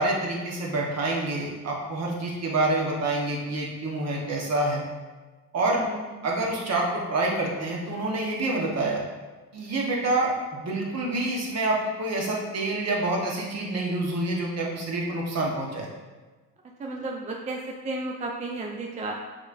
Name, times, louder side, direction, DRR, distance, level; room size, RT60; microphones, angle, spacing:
voice 1, 0.0-4.8 5.5-5.8 6.2-9.0 9.5-15.9, right 2 dB, 50° right, -2 dB, 1.1 m, -27 dB
voice 2, 5.7-6.3 16.8-19.2, right 2 dB, 25° right, 0 dB, 0.4 m, -33 dB
6.1 x 3.2 x 2.5 m, 1.3 s
cardioid pair, 110°, 32 cm